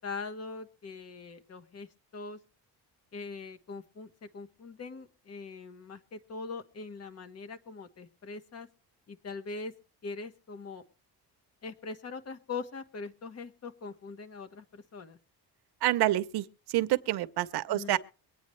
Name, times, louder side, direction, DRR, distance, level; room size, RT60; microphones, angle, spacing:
voice 1, 0.0-1.9 2.1-2.4 3.1-8.7 9.1-9.7 10.0-10.8 11.6-15.2 17.7-18.0, left 4 dB, 40° left, 1.4 m, -42 dB
voice 2, 15.8-18.0, right 15 dB, 70° right, 0.8 m, -28 dB
23.5 x 9.2 x 3.2 m
cardioid pair, 140°, 40 cm